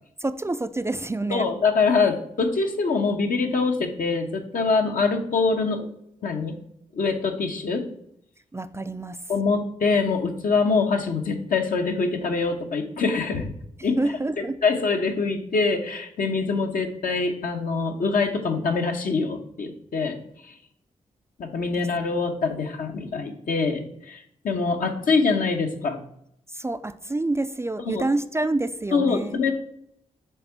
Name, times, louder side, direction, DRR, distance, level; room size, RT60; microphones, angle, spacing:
voice 1, 0.2-1.5 8.5-9.3 14.0-14.6 21.8-21.9 26.5-29.4, right 2 dB, 15° right, 11 dB, 0.4 m, -27 dB
voice 2, 1.3-5.9 6.2-6.6 6.9-7.9 9.3-13.5 13.8-14.0 14.4-20.2 20.4-20.5 21.4-26.0 27.8-28.0 28.9-29.5, left 4 dB, 65° left, 4 dB, 1.0 m, -24 dB
6.7 x 3.6 x 4.5 m, 0.73 s
supercardioid pair, 40°, 15 cm